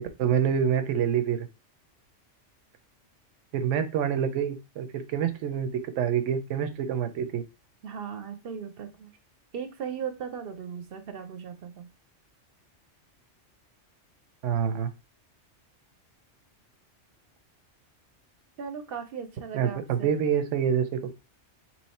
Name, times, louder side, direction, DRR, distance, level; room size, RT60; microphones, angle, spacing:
voice 1, 0.0-1.5 3.5-5.7 6.0-7.4 14.4-14.9 19.5-21.1, right 8 dB, 85° right, 10 dB, 1.0 m, -26 dB
voice 2, 7.8-9.1 9.5-11.9 18.6-20.2, right 7 dB, 60° right, 8 dB, 0.7 m, -37 dB
3.2 x 2.9 x 4.1 m, 0.29 s
omnidirectional pair, 1.2 m